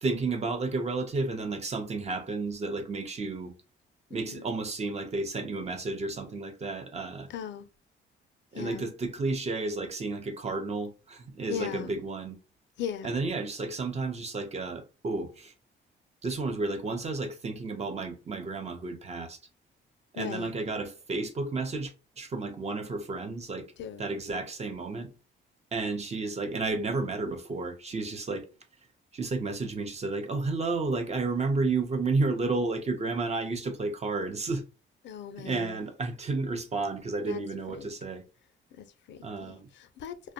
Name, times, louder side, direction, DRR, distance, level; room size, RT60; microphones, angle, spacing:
voice 1, 0.0-3.5 4.1-7.3 8.5-12.4 13.0-15.5 16.2-19.4 20.1-21.9 22.2-23.7 24.0-25.1 25.7-28.5 29.1-34.6 35.4-38.2 39.2-39.7, right 3 dB, 35° right, 0.6 m, -32 dB
voice 2, 4.1-4.4 7.3-7.7 8.5-8.9 11.5-11.9 12.8-13.2 20.2-20.5 23.8-24.1 35.0-35.8 37.2-37.4 37.7-37.9 38.7-40.3, left 8 dB, 65° left, 0.4 m, -39 dB
2.5 x 2.1 x 2.7 m
cardioid pair, 90°, 20 cm